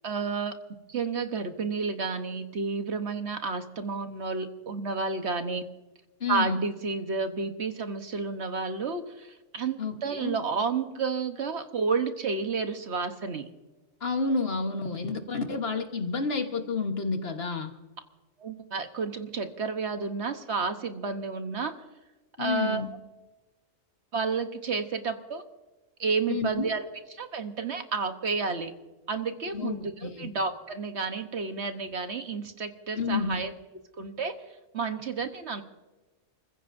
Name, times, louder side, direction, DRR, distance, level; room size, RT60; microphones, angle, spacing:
voice 1, 0.0-0.5 0.9-5.6 6.3-13.5 18.4-21.7 22.4-22.8 24.1-25.4 26.0-28.7 29.1-33.5 34.0-34.3 34.7-35.6, right 4 dB, 55° right, 7 dB, 1.3 m, -31 dB
voice 2, 6.2-6.6 9.8-10.4 14.0-17.7 22.4-22.9 26.3-26.7 29.5-30.3 32.9-33.4, left 4 dB, 50° left, 6 dB, 1.4 m, -30 dB
29.5 x 15.5 x 2.6 m, 1.2 s
omnidirectional pair, 1.4 m